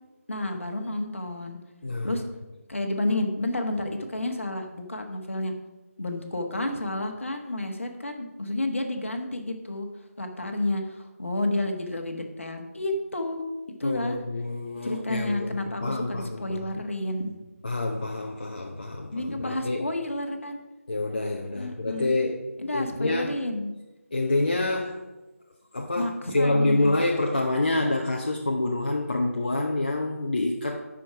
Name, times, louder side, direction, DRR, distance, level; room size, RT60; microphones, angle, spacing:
voice 1, 0.3-1.6 2.0-2.2 2.7-5.5 6.0-9.9 10.2-13.4 13.8-14.1 14.8-17.3 19.1-20.6 21.5-22.1 22.6-23.7 26.0-27.0, left 1 dB, 55° left, 4 dB, 1.4 m, -30 dB
voice 2, 1.8-2.2 13.8-16.6 17.6-19.9 20.9-22.4 22.7-23.4 24.1-25.0 25.7-30.8, left 2 dB, 40° left, 1 dB, 0.7 m, -27 dB
11.5 x 4.9 x 4.9 m, 1.1 s
figure-of-eight pair, 160°, 8 cm